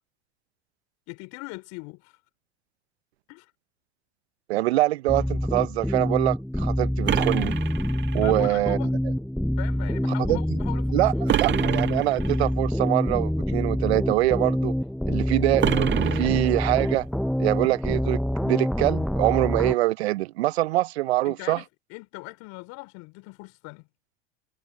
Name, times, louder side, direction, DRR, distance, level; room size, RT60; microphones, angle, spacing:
voice 1, 1.1-2.2 3.3-3.5 8.2-8.9 9.6-11.0 11.3-11.5 21.2-21.6 21.9-23.9, left 27 dB, 55° left, 4.9 m, -40 dB
voice 2, 4.5-7.5 8.1-8.8 9.0-9.1 10.3-10.4 10.9-14.7 15.1-17.1 17.4-21.6, right 17 dB, 70° right, 1.1 m, -24 dB
sound 1, 5.1-19.7, equal, ahead, 0.8 m, -26 dB
sound 2, 7.1-8.4 11.3-12.4 15.6-16.9, right 10 dB, 35° right, 1.8 m, -27 dB
hypercardioid pair, 85°, 33 cm